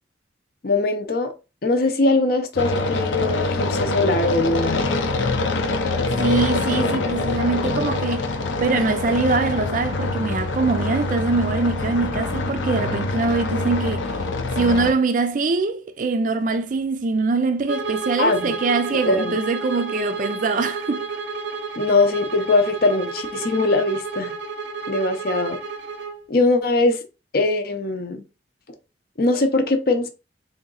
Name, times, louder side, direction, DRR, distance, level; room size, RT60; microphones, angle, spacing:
voice 1, 0.6-1.3 1.6-4.9 18.2-18.5 19.0-19.4 21.8-24.4 24.9-25.6 26.3-27.0 27.3-28.2 29.2-30.1, left 2 dB, 55° left, 0.6 m, -21 dB
sound 1, 2.6-14.9, left 3 dB, 90° left, 0.7 m, -24 dB
voice 2, 6.2-8.3 8.6-14.1 14.6-21.1, right 3 dB, 45° right, 0.4 m, -23 dB
Bowed string instrument, 17.6-26.2, right 4 dB, 85° right, 0.7 m, -31 dB
3.8 x 2.8 x 3.9 m
head